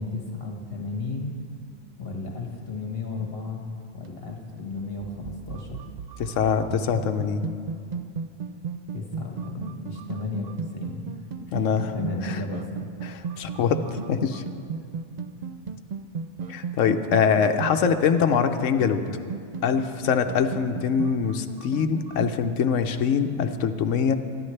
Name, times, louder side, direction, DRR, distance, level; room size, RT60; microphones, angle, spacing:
voice 1, 0.0-1.4 2.0-3.6 3.9-5.8 8.9-11.2 11.5-11.7 11.9-12.9, left 3 dB, 50° left, 0 dB, 1.6 m, -34 dB
sound 1, 3.7-22.6, right 5 dB, 85° right, 0.3 m, -36 dB
voice 2, 6.2-7.5 11.5-11.9 12.2-12.4 13.0-14.4 16.5-19.0 19.6-24.2, left 7 dB, 75° left, 7 dB, 1.1 m, -23 dB
24.0 x 11.0 x 3.3 m, 2.4 s
omnidirectional pair, 1.3 m